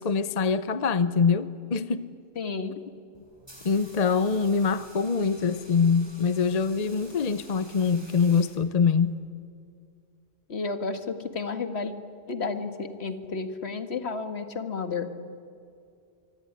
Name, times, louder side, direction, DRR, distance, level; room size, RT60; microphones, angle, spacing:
voice 1, 0.0-2.1 3.6-9.2, left 5 dB, 40° left, 0.8 m, -24 dB
voice 2, 2.4-2.8 10.5-11.9 12.3-15.1, left 4 dB, 75° left, 2.0 m, -32 dB
sound 1, 3.1-9.1, equal, 25° right, 5.6 m, -51 dB
25.0 x 24.5 x 9.7 m
omnidirectional pair, 1.1 m